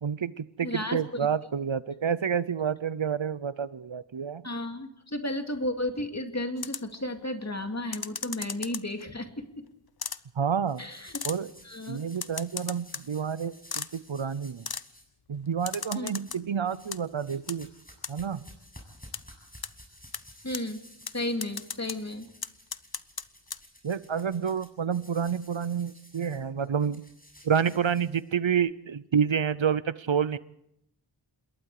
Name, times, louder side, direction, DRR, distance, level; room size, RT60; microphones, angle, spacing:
voice 1, 0.0-4.4 10.4-10.8 11.2-11.5 11.9-14.7 15.3-17.7 18.1-18.5 23.8-27.0 27.4-30.4, right 7 dB, 75° right, 17 dB, 0.8 m, -29 dB
voice 2, 0.6-1.0 4.4-9.6 10.8-11.2 11.6-12.0 16.0-16.1 20.4-20.8 21.1-22.3, left 1 dB, 35° left, 5 dB, 2.4 m, -33 dB
sound 1, 6.6-7.0 7.9-9.0 10.0-10.2 11.1-11.4 12.2-13.1 13.7-13.9 14.7-14.9 15.7-16.4 16.7-17.0 17.5-17.6 18.0-18.1 19.1-19.2 19.6-19.7 20.1-20.2 20.5-20.6 21.1-21.2 21.4-22.0 22.4-23.2 23.5-23.6, left 6 dB, 50° left, 0.8 m, -35 dB
sound 2, 10.7-15.1 15.6-16.4 16.7-28.6, equal, 20° left, 7.5 m, -54 dB
27.5 x 21.5 x 4.9 m, 0.78 s
wide cardioid pair, 40°, 47 cm